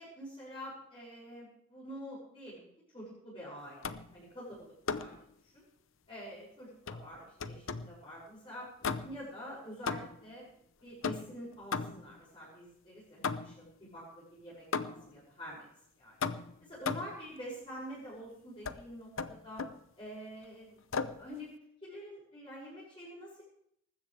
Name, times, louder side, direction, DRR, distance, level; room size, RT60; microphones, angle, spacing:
voice 1, 0.0-2.7 2.9-5.1 5.4-5.7 6.1-8.7 9.0-10.5 10.8-15.7 16.0-16.2 16.6-19.6 20.0-20.8 21.2-21.5 21.8-23.4, equal, 25° left, -8 dB, 6.5 m, -47 dB
sound 1, 3.8-4.2 4.9-5.2 6.9-8.0 8.8-9.3 9.9-10.3 11.0-12.2 13.2-13.7 14.7-15.2 16.2-17.2 18.6-18.8 19.2-19.8 20.9-21.3, left 5 dB, 70° left, 0.8 m, -37 dB
19.5 x 15.5 x 3.4 m, 0.71 s
head